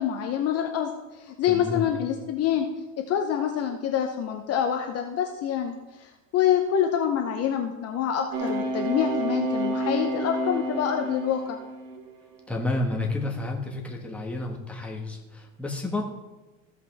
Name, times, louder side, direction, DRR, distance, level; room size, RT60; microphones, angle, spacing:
voice 1, 0.0-2.7 3.0-11.6, left 9 dB, 40° left, 4 dB, 0.8 m, -26 dB
voice 2, 1.5-1.9 12.5-16.0, left 2 dB, 5° left, -1 dB, 1.5 m, -30 dB
sound 1, 8.3-12.1 12.6-12.9, right 1 dB, 90° right, 1.3 m, -29 dB
15.0 x 5.7 x 3.5 m, 1.1 s
supercardioid pair, 115°, 39 cm